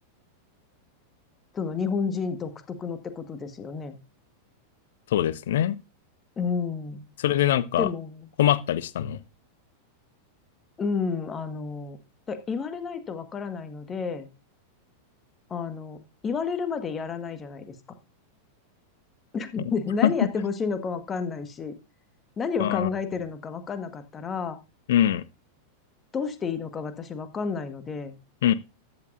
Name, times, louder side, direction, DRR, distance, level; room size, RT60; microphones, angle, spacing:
voice 1, 1.5-4.0 6.4-7.1 7.8-8.3 10.8-12.0 12.3-14.3 15.5-17.7 19.3-21.7 22.4-24.6 26.1-28.1, left 5 dB, 20° left, 1.5 m, -30 dB
voice 2, 5.1-5.8 7.2-7.9 8.4-9.2 20.0-20.1 22.6-22.9 24.9-25.2 28.4-28.5, left 11 dB, 60° left, 0.7 m, -22 dB
13.5 x 9.6 x 2.6 m
figure-of-eight pair, 90°, 0 cm